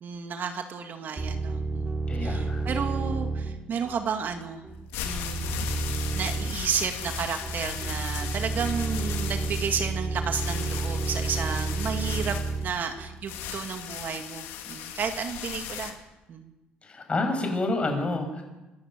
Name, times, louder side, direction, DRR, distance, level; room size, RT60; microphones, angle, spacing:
voice 1, 0.0-4.7 5.0-15.9 16.3-16.5, right 6 dB, 55° right, 6 dB, 2.0 m, -32 dB
sound 1, 1.2-13.6, right 3 dB, 25° right, 2.9 m, -31 dB
voice 2, 2.1-2.6 16.9-18.4, left 2 dB, 30° left, 5 dB, 6.2 m, -28 dB
sound 2, 4.7-15.9, left 9 dB, 85° left, 2.4 m, -37 dB
25.5 x 11.5 x 9.0 m, 1.0 s
cardioid pair, 90°, 4 cm